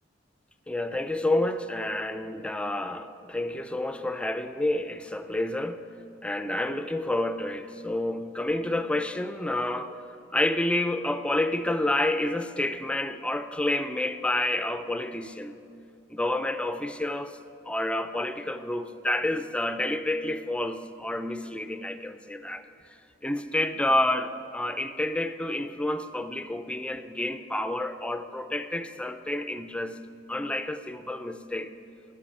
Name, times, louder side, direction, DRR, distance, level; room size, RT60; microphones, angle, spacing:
voice 1, 0.7-5.9 6.2-9.9 10.3-15.5 16.1-17.4 17.6-22.6 23.2-30.0 30.3-31.7, left 1 dB, 5° left, 10 dB, 0.5 m, -29 dB
13.5 x 6.1 x 9.8 m, 2.5 s
head